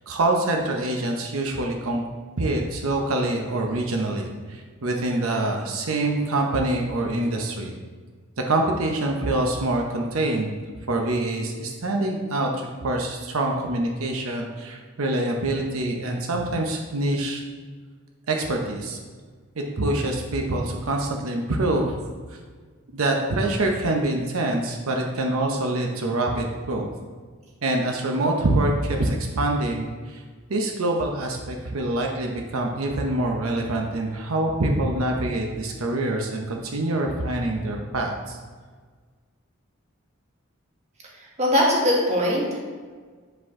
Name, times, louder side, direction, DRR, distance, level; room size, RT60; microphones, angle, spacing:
voice 1, 0.0-2.0 2.4-7.7 8.4-10.5 10.9-17.4 18.3-19.0 19.6-22.0 22.3-22.4 22.9-26.9 27.6-30.2 30.5-38.4, right 2 dB, 85° right, 1 dB, 0.8 m, -25 dB
voice 2, 41.1-42.6, left 1 dB, 30° right, -3 dB, 1.5 m, -21 dB
7.7 x 5.1 x 3.6 m, 1.5 s
head